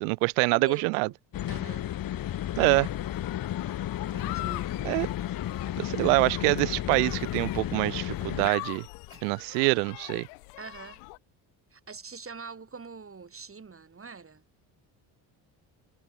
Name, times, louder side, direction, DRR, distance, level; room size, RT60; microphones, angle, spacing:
voice 1, 0.0-1.1 2.6-2.9 4.8-5.1 5.8-8.9 9.2-10.3, right 37 dB, 90° right, 0.7 m, -25 dB
voice 2, 0.5-1.1 1.5-2.0 4.1-4.7 9.1-9.2 10.6-11.0 11.7-14.4, right 5 dB, 30° right, 4.4 m, -44 dB
sound 1, 1.3-8.5, left 12 dB, 45° left, 1.0 m, -33 dB
sound 2, 2.6-11.2, left 40 dB or more, 90° left, 4.0 m, -43 dB
supercardioid pair, 70°, 45 cm